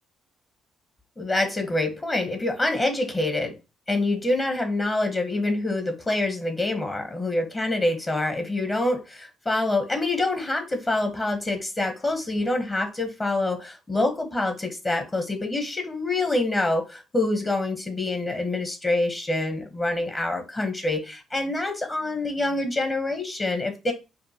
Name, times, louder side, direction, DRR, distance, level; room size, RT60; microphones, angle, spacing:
voice 1, 1.2-3.6 3.9-23.9, left 2 dB, 30° left, 6 dB, 1.0 m, -26 dB
5.2 x 2.2 x 2.8 m, 0.27 s
hypercardioid pair, 45°, 0 cm